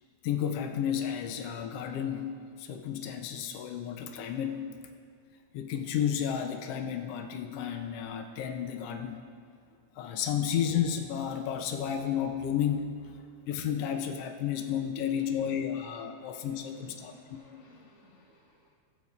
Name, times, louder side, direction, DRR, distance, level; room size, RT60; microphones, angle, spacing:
voice 1, 0.2-2.3 2.6-4.6 5.5-9.2 9.9-13.2 13.4-17.4, left 9 dB, 85° left, 5 dB, 1.3 m, -32 dB
voice 2, 15.8-18.8, left 1 dB, 50° left, -4 dB, 2.2 m, -58 dB
19.5 x 8.2 x 2.4 m, 2.1 s
omnidirectional pair, 3.3 m